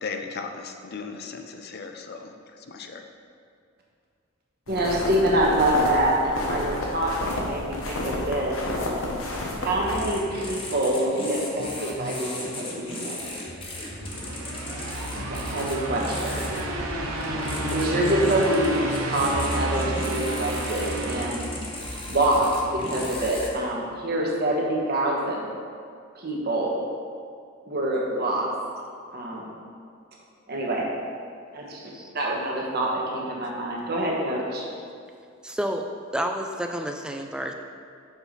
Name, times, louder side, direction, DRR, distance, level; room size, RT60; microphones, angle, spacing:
voice 1, 0.0-3.0, left 4 dB, 50° left, 5 dB, 0.6 m, -37 dB
sound 1, 4.7-9.9, left 1 dB, 75° left, 1.1 m, -30 dB
voice 2, 4.7-8.6 9.6-13.2 15.1-16.4 17.7-21.5 22.1-25.5 26.1-26.7 27.7-28.5 29.1-29.5 30.5-30.9 31.5-34.7, right 1 dB, 50° right, -3 dB, 1.2 m, -26 dB
sound 2, 9.8-23.5, left 1 dB, 25° left, 1.0 m, -36 dB
sound 3, 13.8-22.1, right 1 dB, 85° right, 0.8 m, -30 dB
voice 3, 35.4-35.9 36.1-37.5, equal, 5° right, 4 dB, 0.4 m, -29 dB
6.9 x 4.3 x 5.1 m, 2.4 s
head